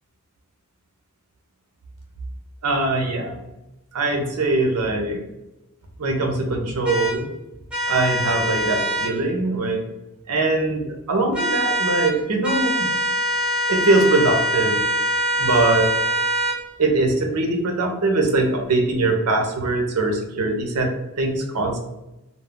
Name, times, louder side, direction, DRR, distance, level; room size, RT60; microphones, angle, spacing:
voice 1, 2.6-3.4 3.9-5.2 6.0-7.3 7.9-9.8 10.3-12.9 13.7-14.8 15.4-15.9 16.8-21.8, right 2 dB, 80° right, 2 dB, 0.6 m, -22 dB
sound 1, 6.9-7.1 7.7-9.1 11.3-12.1 12.4-16.6, right 1 dB, 5° right, 0.6 m, -23 dB
2.3 x 2.0 x 3.6 m, 0.94 s
head